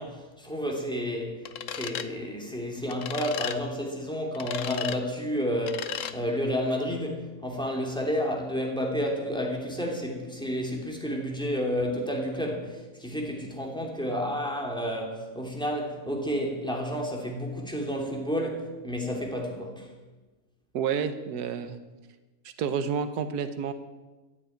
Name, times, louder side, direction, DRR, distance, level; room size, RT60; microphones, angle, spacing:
voice 1, 0.0-1.4 1.7-19.9, equal, 5° left, 0 dB, 2.8 m, -31 dB
sound 1, 1.5-2.1 2.9-3.6 4.3-5.0 5.7-6.2, left 9 dB, 65° left, 1.0 m, -35 dB
voice 2, 20.7-21.8 22.4-23.7, right 7 dB, 90° right, 10 dB, 1.4 m, -29 dB
14.5 x 8.3 x 9.2 m, 1.2 s
omnidirectional pair, 1.6 m